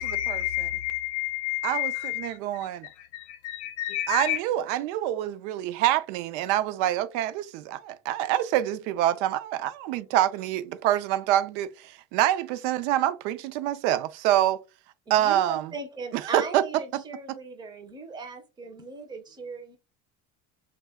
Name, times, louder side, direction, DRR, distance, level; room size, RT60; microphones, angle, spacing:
voice 1, 0.0-4.4, left 14 dB, 90° left, 0.6 m, -31 dB
voice 2, 1.6-2.9 4.1-14.6 15.1-15.7 16.1-17.0 17.3-17.4, right 13 dB, 75° right, 0.5 m, -26 dB
voice 3, 15.1-19.8, right 4 dB, 10° right, 0.5 m, -38 dB
2.2 x 2.1 x 3.4 m
cardioid pair, 140°, 36 cm